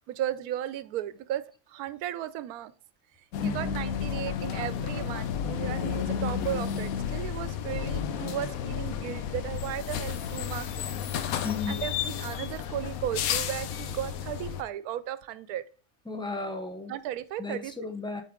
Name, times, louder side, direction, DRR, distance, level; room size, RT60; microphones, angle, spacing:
voice 1, 0.1-2.7 3.4-11.3 11.7-15.7 16.9-17.7, right 12 dB, 80° right, 1.1 m, -35 dB
sound 1, 3.3-14.6, left 8 dB, 70° left, 1.1 m, -32 dB
voice 2, 11.4-11.8 16.1-17.0 17.4-18.2, left 4 dB, 5° left, 0.6 m, -34 dB
8.4 x 4.3 x 3.6 m
omnidirectional pair, 1.6 m